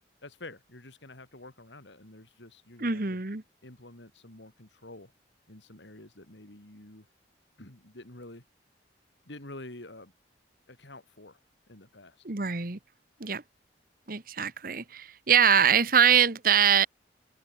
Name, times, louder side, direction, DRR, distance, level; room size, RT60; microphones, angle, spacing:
voice 1, 0.2-3.2 3.6-5.1 5.5-7.1 7.6-8.4 9.3-10.1 10.7-11.4 11.7-12.2, left 2 dB, 80° left, 3.6 m, -48 dB
voice 2, 2.8-3.4 12.2-12.8 13.2-13.4 14.1-16.9, right 7 dB, 50° right, 1.3 m, -23 dB
open air
head